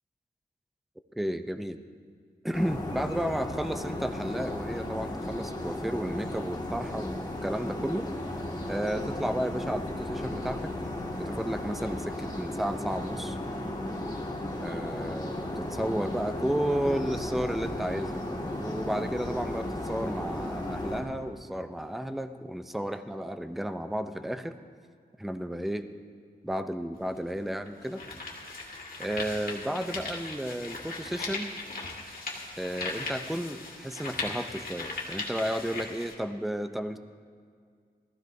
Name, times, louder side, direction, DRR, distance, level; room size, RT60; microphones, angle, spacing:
voice 1, 1.2-1.8 2.4-8.1 8.7-10.7 11.2-13.4 14.6-18.2 18.6-24.6 25.2-25.9 26.4-28.1 29.0-31.5 32.6-37.0, equal, ahead, 9 dB, 0.5 m, -32 dB
sound 1, 2.5-21.0, left 1 dB, 25° left, 1.6 m, -35 dB
sound 2, 26.9-27.0 27.7-36.1, left 3 dB, 60° left, 1.8 m, -38 dB
18.5 x 14.0 x 2.7 m, 2.1 s
wide cardioid pair, 120°, 17 cm